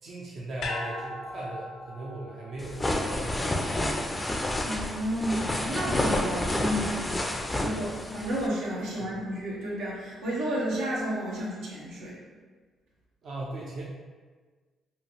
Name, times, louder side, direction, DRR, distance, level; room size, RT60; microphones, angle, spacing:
voice 1, 0.0-2.8 3.1-3.9 7.3-7.6 8.9-9.1 13.2-13.8, right 2 dB, 60° right, -4 dB, 0.5 m, -39 dB
sound 1, 0.6-4.9 5.3-5.4, left 2 dB, 80° left, 0.4 m, -40 dB
sound 2, 2.6-8.5, left 1 dB, 15° left, 0.3 m, -29 dB
voice 2, 4.6-12.2, equal, 90° right, -5 dB, 0.8 m, -32 dB
2.8 x 2.6 x 2.8 m, 1.4 s
cardioid pair, 90°, 0 cm